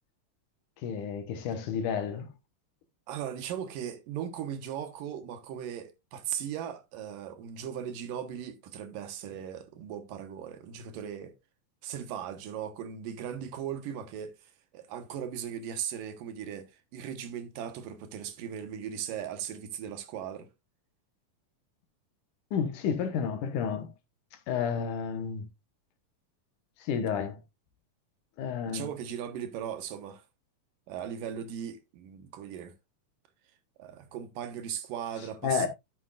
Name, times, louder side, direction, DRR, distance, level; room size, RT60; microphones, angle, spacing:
voice 1, 0.8-2.3 22.5-23.9 24.3-25.5 26.8-27.4 28.4-28.9 35.4-35.7, left 7 dB, 75° left, 2.7 m, -31 dB
voice 2, 3.1-11.3 11.8-20.5 28.7-30.2 30.9-32.7 33.8-35.7, right 9 dB, 90° right, 2.9 m, -38 dB
12.0 x 7.2 x 2.4 m
omnidirectional pair, 3.8 m